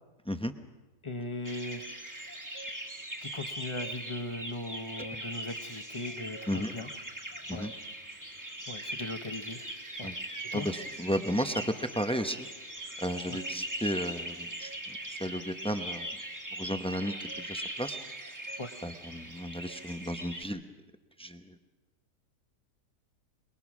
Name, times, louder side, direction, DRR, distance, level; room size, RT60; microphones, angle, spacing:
voice 1, 1.0-1.8 3.2-6.9 7.5-7.7 8.7-9.7 10.0-10.1 10.4-10.7 13.3-13.4 18.6-18.8, left 2 dB, 25° left, 8 dB, 0.7 m, -39 dB
sound 1, 1.4-20.4, right 1 dB, 10° right, 1.4 m, -40 dB
voice 2, 10.5-16.1 16.5-18.0 18.3-20.6 21.2-21.6, equal, 10° left, 8 dB, 0.3 m, -34 dB
23.5 x 21.5 x 6.1 m, 1.1 s
omnidirectional pair, 1.7 m